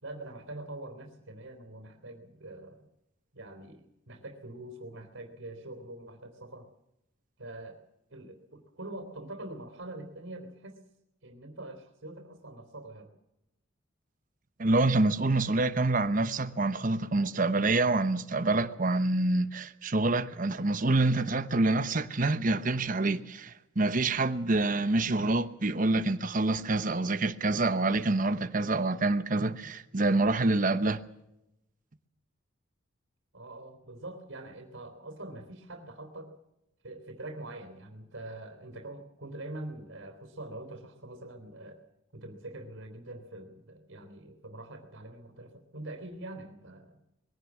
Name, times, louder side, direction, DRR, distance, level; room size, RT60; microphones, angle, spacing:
voice 1, 0.0-2.9 3.3-6.7 7.4-7.8 8.1-10.8 11.2-13.1 33.3-36.3 36.8-41.8 42.1-47.0, right 2 dB, 85° right, 3.4 m, -44 dB
voice 2, 14.6-31.0, right 2 dB, 40° right, 1.0 m, -27 dB
21.5 x 17.0 x 7.3 m
head